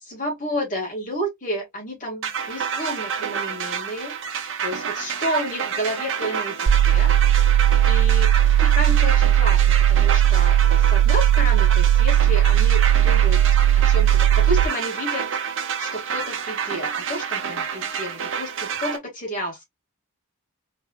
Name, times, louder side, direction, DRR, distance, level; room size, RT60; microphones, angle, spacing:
voice 1, 0.0-4.2 4.6-7.1 7.9-8.3 8.6-9.6 9.9-13.4 13.7-15.3 15.8-19.6, equal, 35° left, 2.5 m, -30 dB
sound 1, 2.2-19.0, right 7 dB, 60° right, 0.8 m, -29 dB
sound 2, 6.7-14.7, right 11 dB, 75° right, 0.4 m, -17 dB
4.0 x 3.4 x 2.5 m
head